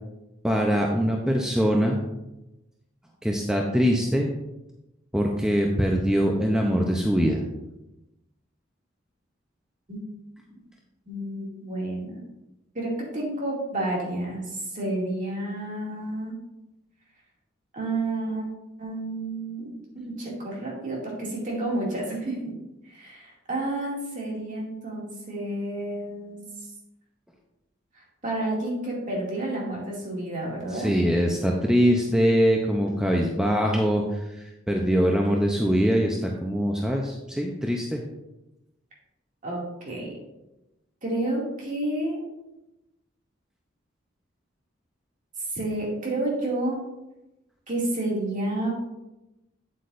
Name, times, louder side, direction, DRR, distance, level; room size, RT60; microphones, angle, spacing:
voice 1, 0.4-2.1 3.2-4.3 5.1-7.4 30.7-38.0, equal, 5° right, 0 dB, 0.6 m, -23 dB
voice 2, 11.1-12.2 12.7-16.3 17.7-18.5 18.8-19.7 19.9-22.5 22.8-26.4 27.9-31.0 39.4-40.1 41.0-42.2 45.5-46.8 47.7-48.7, right 1 dB, 40° right, -3 dB, 2.4 m, -30 dB
8.5 x 8.0 x 2.6 m, 0.95 s
head